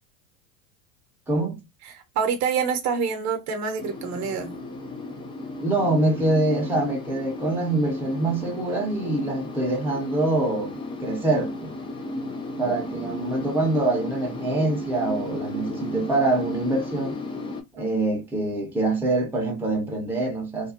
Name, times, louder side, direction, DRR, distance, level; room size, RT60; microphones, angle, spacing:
voice 1, 1.3-1.6 5.6-10.7 11.0-11.7 12.6-17.2 17.7-20.7, right 2 dB, 5° right, 0.8 m, -25 dB
voice 2, 1.8-4.5 12.6-12.8 13.0-13.1 17.8-17.9, right 6 dB, 40° right, 0.8 m, -27 dB
sound 1, 3.8-17.6, left 1 dB, 15° left, 0.4 m, -34 dB
2.5 x 2.2 x 2.5 m
hypercardioid pair, 80°, 43 cm